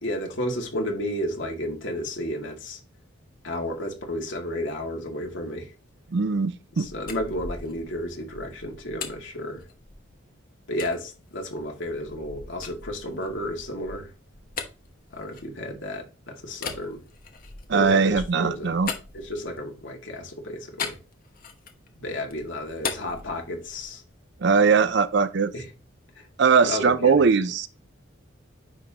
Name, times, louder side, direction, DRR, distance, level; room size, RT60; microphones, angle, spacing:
voice 1, 0.0-2.8 3.4-5.7 6.8-9.6 10.7-14.1 15.1-17.0 17.7-18.8 19.1-21.0 22.0-24.0 25.5-25.7 26.2-26.3 26.6-27.3, left 1 dB, 65° left, 2.0 m, -32 dB
voice 2, 6.1-6.9 17.7-18.9 24.4-25.5 26.4-27.7, right 5 dB, 55° right, 0.5 m, -20 dB
sound 1, 6.8-10.2 10.8-11.0 11.5-16.0 16.5-19.8 20.8-21.9 22.2-24.0, left 5 dB, 45° left, 1.0 m, -39 dB
9.8 x 3.8 x 2.8 m
head